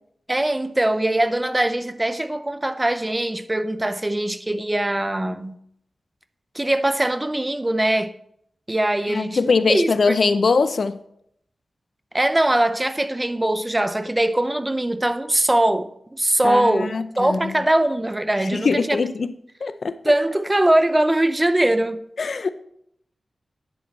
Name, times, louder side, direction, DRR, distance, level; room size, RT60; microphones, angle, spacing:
voice 1, 0.3-5.6 6.5-8.1 8.7-10.1 12.1-19.0 20.0-22.0, right 1 dB, 15° right, 0.5 m, -21 dB
voice 2, 9.1-11.0 16.4-17.5 18.4-19.3 19.6-20.0 22.2-22.5, left 4 dB, 60° left, 0.5 m, -22 dB
10.5 x 8.4 x 4.0 m
wide cardioid pair, 105°, 0 cm